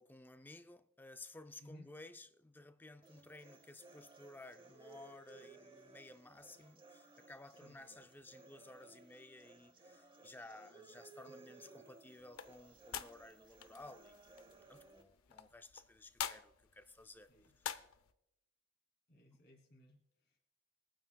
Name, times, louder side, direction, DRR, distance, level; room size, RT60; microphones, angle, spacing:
voice 1, 0.0-14.3 14.7-17.8 19.3-19.4, left 2 dB, 10° left, 0.3 m, -56 dB
sound 1, 3.0-15.0, right 3 dB, 25° right, 0.8 m, -60 dB
voice 2, 7.5-7.8 11.3-11.4 15.3-15.4 17.3-17.5 19.1-20.4, left 1 dB, 55° left, 2.4 m, -61 dB
sound 2, 12.2-18.1, left 9 dB, 90° left, 0.6 m, -48 dB
22.5 x 9.1 x 2.3 m
head